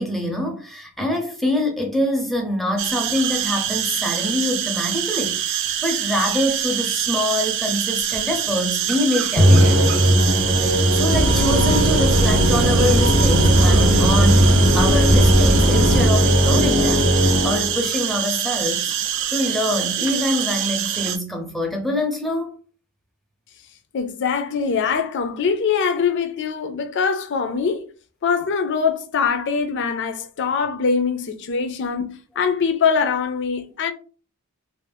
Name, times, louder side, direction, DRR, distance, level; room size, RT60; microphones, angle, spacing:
voice 1, 0.0-9.7 10.6-17.1 17.4-18.9 19.3-22.6, left 1 dB, ahead, 0.5 m, -25 dB
sound 1, 2.8-21.2, right 10 dB, 55° right, 0.3 m, -25 dB
Musical instrument, 9.4-17.9, equal, 40° right, 0.7 m, -17 dB
sound 2, 11.1-16.1, right 1 dB, 85° right, 0.7 m, -21 dB
voice 2, 23.9-27.9 28.2-33.9, left 6 dB, 50° left, 0.4 m, -23 dB
2.5 x 2.0 x 3.3 m
head